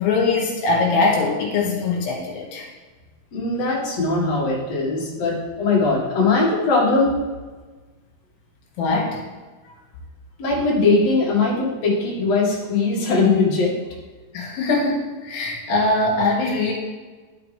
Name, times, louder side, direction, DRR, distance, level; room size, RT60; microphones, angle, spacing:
voice 1, 0.0-2.7 8.8-9.2 14.3-16.7, left 3 dB, 75° left, -2 dB, 4.0 m, -21 dB
voice 2, 3.3-7.2 10.4-13.7, left 3 dB, 45° left, -5 dB, 2.6 m, -20 dB
11.5 x 5.8 x 3.5 m, 1.3 s
omnidirectional pair, 5.1 m